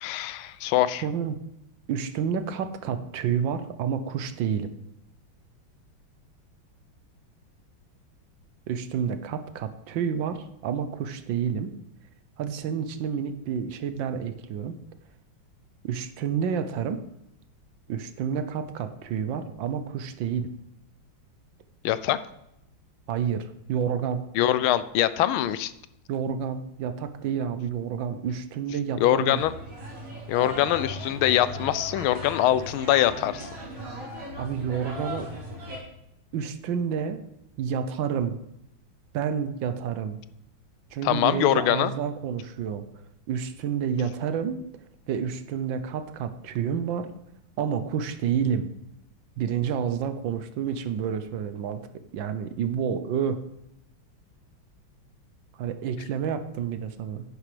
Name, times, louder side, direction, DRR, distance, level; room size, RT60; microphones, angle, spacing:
voice 1, 0.0-1.0 21.8-22.2 24.4-25.7 29.0-29.5 30.3-33.5 41.0-41.9, left 13 dB, 80° left, 15 dB, 1.4 m, -23 dB
voice 2, 1.0-1.4 1.9-4.7 8.7-11.7 12.4-14.8 15.8-17.0 17.9-20.5 23.1-24.2 26.1-29.4 30.6-30.7 34.4-35.3 36.3-37.2 37.6-38.4 39.1-40.2 40.9-42.8 43.3-44.6 45.1-47.1 47.6-48.7 49.4-51.8 52.1-53.4 55.6-57.2, right 7 dB, 75° right, 10 dB, 1.3 m, -29 dB
sound 1, 29.3-35.8, equal, 60° right, 3.5 m, -38 dB
10.5 x 9.9 x 3.3 m, 0.81 s
omnidirectional pair, 2.3 m